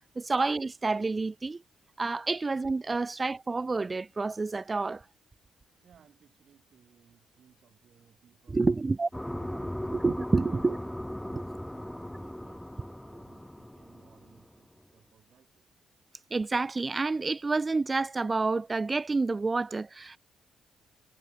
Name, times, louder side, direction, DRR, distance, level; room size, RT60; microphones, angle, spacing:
voice 1, 0.2-1.6 2.0-5.0 8.5-9.1 9.5-9.6 9.9-10.8 11.3-11.4 16.3-20.2, right 3 dB, 25° right, 0.4 m, -29 dB
voice 2, 5.8-10.0 10.4-10.9 11.3-15.6, right 8 dB, 55° right, 5.3 m, -62 dB
sound 1, 9.1-14.6, left 1 dB, 5° left, 0.9 m, -38 dB
cardioid pair, 90°, 0 cm